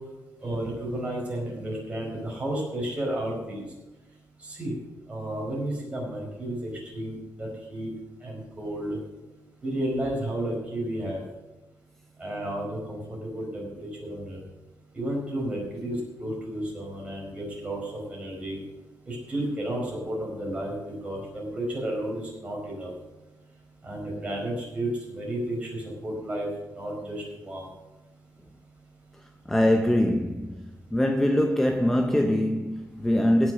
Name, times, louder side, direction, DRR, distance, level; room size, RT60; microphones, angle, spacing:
voice 1, 0.4-3.6 4.4-4.7 5.1-7.9 8.2-9.0 9.6-11.2 12.2-14.4 14.9-18.6 19.1-22.9 23.8-26.5 26.7-27.7, right 1 dB, 20° right, 4.9 m, -32 dB
voice 2, 29.5-33.5, left 1 dB, 5° left, 0.6 m, -23 dB
16.5 x 6.5 x 6.3 m
wide cardioid pair, 165°, 6 cm